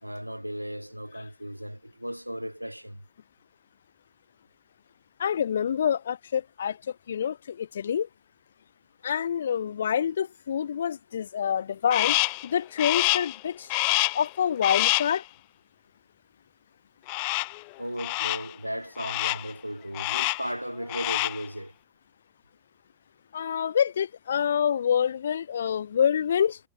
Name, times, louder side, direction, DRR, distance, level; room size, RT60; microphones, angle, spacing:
voice 1, 0.0-3.0 17.8-21.7, equal, 90° right, 1.6 m, -36 dB
voice 2, 5.2-6.8 7.1-8.1 9.0-12.2 12.4-13.7 14.1-15.2 23.3-26.6, left 8 dB, 65° left, 1.1 m, -26 dB
Crow, 11.9-12.5 12.8-13.4 13.7-14.3 14.6-15.2 17.1-17.6 18.0-18.5 19.0-19.5 19.9-20.5 20.8-21.5, left 32 dB, 45° left, 0.4 m, -27 dB
figure-of-eight pair, 90°, 0 cm